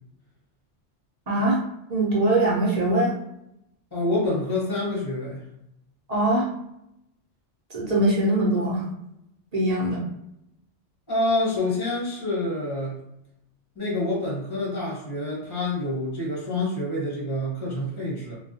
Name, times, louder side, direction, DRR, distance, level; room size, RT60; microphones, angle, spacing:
voice 1, 1.3-1.6 1.9-3.1 6.1-6.5 7.7-8.8 9.5-10.0, right 1 dB, 40° right, -5 dB, 0.7 m, -22 dB
voice 2, 3.9-5.4 11.1-13.0 13.7-18.4, left 2 dB, 20° left, -5 dB, 1.0 m, -27 dB
2.3 x 2.2 x 2.7 m, 0.81 s
omnidirectional pair, 1.2 m